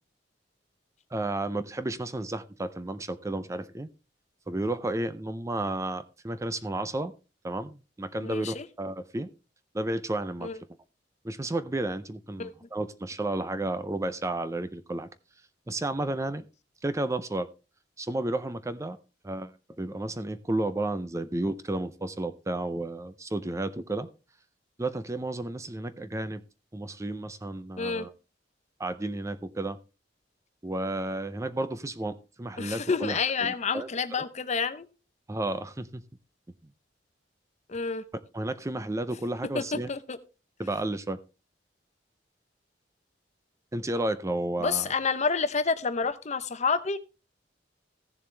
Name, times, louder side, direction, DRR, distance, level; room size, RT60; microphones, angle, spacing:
voice 1, 1.1-3.9 4.5-7.1 7.4-9.3 9.7-10.5 11.2-15.1 15.7-16.4 16.8-17.5 18.0-19.0 19.2-19.5 19.8-24.1 24.8-26.4 26.7-28.1 28.8-29.8 30.6-33.9 35.3-36.0 38.3-39.9 40.6-41.2 43.7-44.9, right 2 dB, 15° right, 13 dB, 0.5 m, -32 dB
voice 2, 8.2-8.7 10.4-10.6 12.4-12.5 27.8-28.1 32.6-34.9 37.7-38.0 39.5-40.2 44.6-47.0, left 5 dB, 40° left, 12 dB, 0.8 m, -29 dB
15.5 x 7.2 x 3.3 m, 0.31 s
head